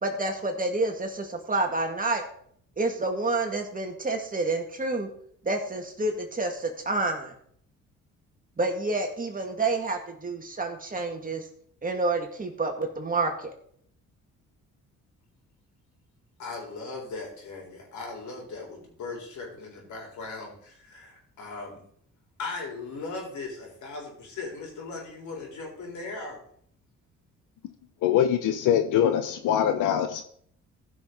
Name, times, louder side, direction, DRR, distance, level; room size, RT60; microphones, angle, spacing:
voice 1, 0.0-2.2 2.8-5.1 5.4-7.3 8.6-11.4 11.8-13.5, right 2 dB, 30° right, 3 dB, 2.1 m, -28 dB
voice 2, 16.4-21.8 22.4-26.4, left 3 dB, 70° left, -1 dB, 4.0 m, -38 dB
voice 3, 28.0-30.2, left 9 dB, 90° left, 8 dB, 0.8 m, -23 dB
14.5 x 6.2 x 4.0 m, 0.62 s
cardioid pair, 90°, 30 cm